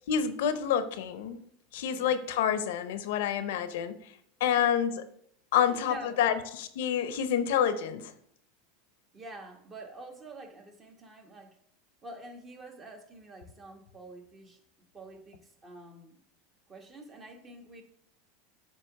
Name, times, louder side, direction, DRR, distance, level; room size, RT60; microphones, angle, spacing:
voice 1, 0.1-1.4 1.7-4.0 4.4-5.1 5.5-8.1, left 9 dB, 75° left, 11 dB, 0.6 m, -28 dB
voice 2, 5.5-6.4 9.1-11.6 12.0-14.6 14.9-16.2 16.7-17.8, right 2 dB, 30° right, 4 dB, 1.2 m, -47 dB
7.8 x 2.9 x 5.7 m, 0.69 s
hypercardioid pair, 105°, 0 cm